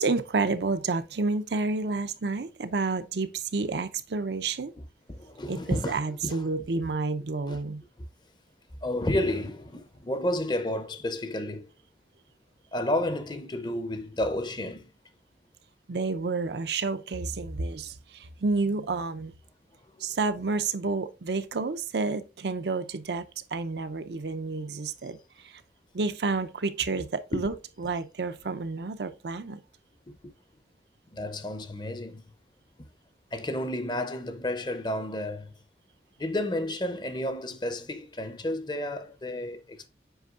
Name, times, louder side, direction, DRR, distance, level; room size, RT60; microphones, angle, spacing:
voice 1, 0.0-4.7 5.5-7.8 15.9-19.3 20.0-25.2 25.4-25.5 25.9-29.6, right 3 dB, 75° right, 0.6 m, -30 dB
voice 2, 5.1-6.4 7.5-7.6 8.8-11.7 12.7-14.9 27.3-27.5 31.1-32.2 33.3-35.5 36.2-39.9, left 1 dB, 25° left, 0.6 m, -31 dB
7.9 x 5.2 x 2.4 m
head